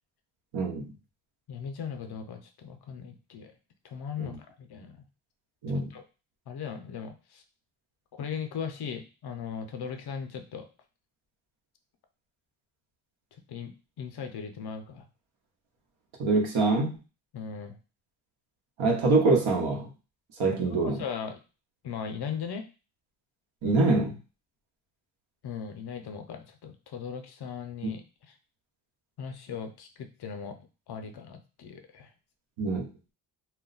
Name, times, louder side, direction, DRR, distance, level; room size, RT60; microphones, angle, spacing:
voice 1, 0.5-0.9 4.2-4.3 5.6-5.9 16.2-17.0 18.8-19.9 20.4-21.0 23.6-24.2 27.8-27.9 32.6-32.9, right 3 dB, 70° right, 1 dB, 0.9 m, -24 dB
voice 2, 1.5-3.5 3.8-5.0 5.7-6.0 6.5-7.4 8.1-10.7 13.5-15.0 17.3-17.7 20.8-21.4 21.8-22.7 25.4-28.0 29.2-32.1, left 6 dB, 50° left, 7 dB, 0.5 m, -38 dB
2.2 x 2.1 x 3.8 m, 0.33 s
cardioid pair, 70°, 49 cm